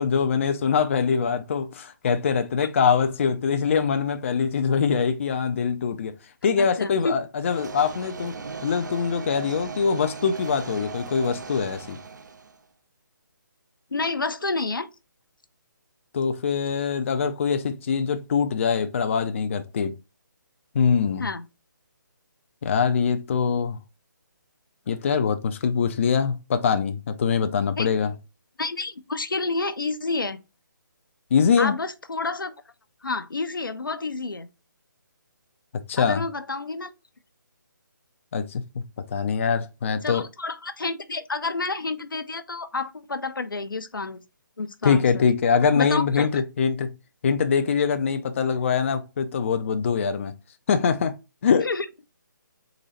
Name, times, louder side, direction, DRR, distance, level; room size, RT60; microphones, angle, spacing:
voice 1, 0.0-6.2 6.4-8.4 8.6-12.0 16.1-20.0 20.7-21.3 22.6-23.8 24.9-28.1 31.3-31.8 35.9-36.3 38.3-38.8 39.1-40.3 44.8-46.9 47.2-50.3 50.7-51.2 51.4-51.7, left 6 dB, 40° left, 0.4 m, -23 dB
voice 2, 6.6-7.1 13.9-14.9 21.2-21.4 27.8-27.9 28.6-30.4 31.6-32.5 33.0-34.5 36.0-36.9 40.0-44.2 44.6-45.3 45.7-46.3 51.6-51.9, left 3 dB, 85° left, 0.6 m, -29 dB
sound 1, 7.4-12.6, right 5 dB, 60° right, 0.7 m, -38 dB
3.9 x 3.0 x 3.9 m
figure-of-eight pair, 150°, 11 cm